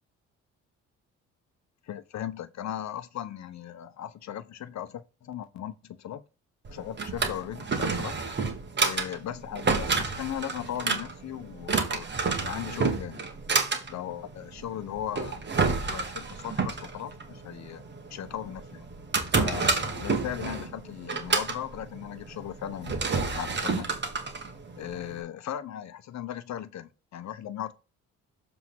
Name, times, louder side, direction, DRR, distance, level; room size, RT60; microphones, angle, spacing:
voice 1, 1.8-6.2 6.7-8.1 8.8-12.1 12.4-13.3 13.9-15.4 15.8-17.8 18.1-18.9 19.4-23.9 24.7-27.7, left 11 dB, 65° left, 1.0 m, -37 dB
Drawer open or close, 6.6-25.2, right 4 dB, 35° right, 1.7 m, -30 dB
7.2 x 3.6 x 6.2 m
cardioid pair, 90°, 30 cm